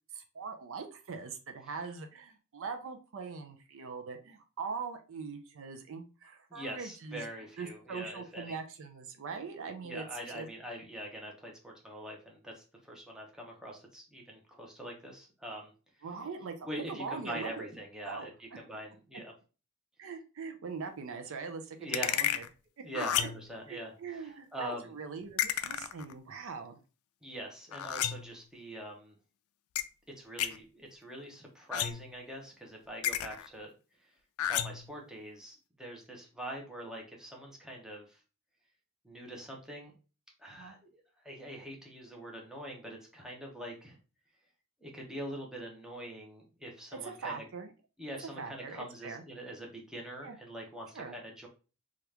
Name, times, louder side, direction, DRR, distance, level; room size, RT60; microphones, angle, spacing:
voice 1, 0.1-10.1 10.3-10.5 16.0-17.7 18.0-18.3 20.0-22.4 22.9-23.3 23.7-26.8 40.6-40.7 47.0-47.7 48.4-49.2 50.2-50.4 50.9-51.1, right 5 dB, 65° right, 6 dB, 0.5 m, -42 dB
voice 2, 6.5-8.6 9.8-15.7 16.7-19.3 21.8-22.3 22.8-24.9 27.2-29.2 30.1-33.7 34.0-34.1 34.5-38.2 39.0-39.9 40.4-40.8 41.2-44.0 44.8-47.4 48.0-51.5, right 1 dB, 5° right, -1 dB, 0.8 m, -43 dB
sound 1, 21.9-22.5 22.9-23.5 25.4-26.1 27.7-28.4 29.8-29.9 30.4-30.6 31.7-32.2 33.0-33.5 34.4-34.9, left 10 dB, 75° left, 0.3 m, -32 dB
2.9 x 2.4 x 3.3 m, 0.34 s
head